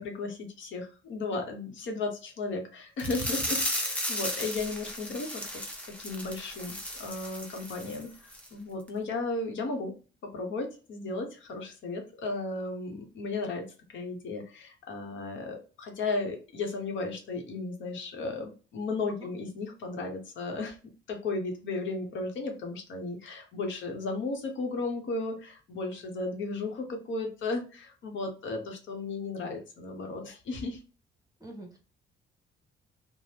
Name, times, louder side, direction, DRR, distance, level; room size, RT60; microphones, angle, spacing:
voice 1, 0.0-5.6 6.0-8.1 8.5-9.9 10.2-20.8 21.1-30.8, left 3 dB, 70° left, 3 dB, 0.8 m, -35 dB
sound 1, 3.0-8.0 8.3-8.5 8.9-9.0, equal, 5° left, 0.7 m, -35 dB
voice 2, 31.4-31.8, right 1 dB, 20° right, 2 dB, 0.9 m, -44 dB
2.8 x 2.0 x 3.3 m, 0.35 s
cardioid pair, 90°, 20 cm